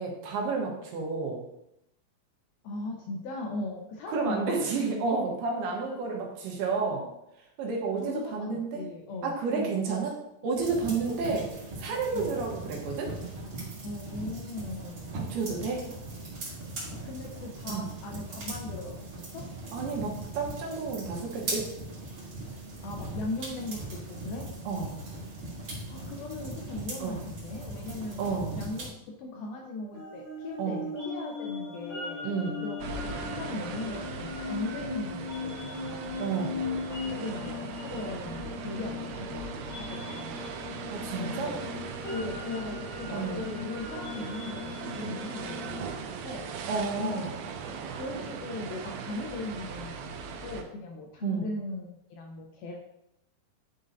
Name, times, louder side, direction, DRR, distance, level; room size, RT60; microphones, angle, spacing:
voice 1, 0.0-1.4 4.1-7.0 7.6-8.8 9.2-10.1 10.4-11.4 11.8-13.1 15.1-15.8 17.7-17.9 19.7-21.7 24.7-24.9 27.0-27.2 28.2-28.6 30.6-30.8 32.2-32.6 36.2-36.6 40.9-41.6 43.1-43.5 46.7-47.3 51.2-51.5, right 4 dB, 70° right, -1 dB, 3.0 m, -31 dB
voice 2, 2.6-4.6 7.0-7.1 8.0-10.0 10.8-11.2 11.9-12.4 13.8-15.1 16.8-19.5 22.8-24.5 25.9-28.2 28.6-32.3 32.6-36.1 36.5-40.8 41.2-41.6 42.1-46.7 47.0-47.3 48.0-50.2 50.4-52.8, left 2 dB, 75° left, 0 dB, 2.2 m, -39 dB
sound 1, 10.5-28.9, right 2 dB, 45° right, 2.4 m, -39 dB
sound 2, 29.9-45.8, left 4 dB, 20° left, 2.3 m, -38 dB
sound 3, 32.8-50.6, right 6 dB, 90° right, 3.0 m, -39 dB
10.5 x 5.3 x 2.7 m, 0.81 s
omnidirectional pair, 4.9 m